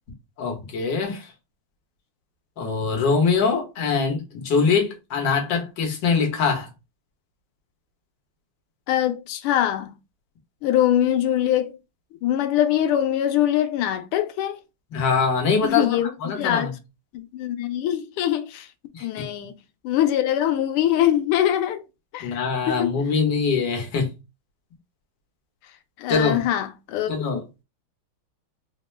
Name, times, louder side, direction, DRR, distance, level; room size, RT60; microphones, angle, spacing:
voice 1, 0.4-1.3 2.6-6.7 14.9-16.7 18.9-19.2 22.2-24.1 26.1-26.4 27.1-27.6, left 5 dB, 60° left, 1.6 m, -23 dB
voice 2, 8.9-9.9 10.6-11.8 12.2-14.6 15.6-16.7 17.1-18.7 19.0-19.5 19.8-21.8 22.1-22.4 22.7-22.9 26.0-27.1, left 11 dB, 90° left, 1.5 m, -23 dB
4.3 x 2.1 x 3.1 m
omnidirectional pair, 2.4 m